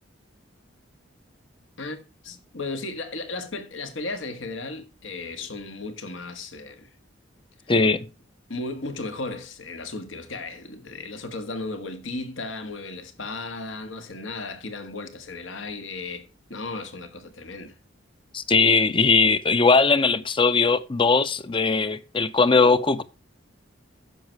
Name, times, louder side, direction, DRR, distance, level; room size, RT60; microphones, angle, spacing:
voice 1, 1.8-6.9 8.5-17.8, left 3 dB, 75° left, 1.6 m, -35 dB
voice 2, 7.7-8.1 18.3-23.0, left 4 dB, 25° left, 0.6 m, -20 dB
10.0 x 6.5 x 4.6 m
head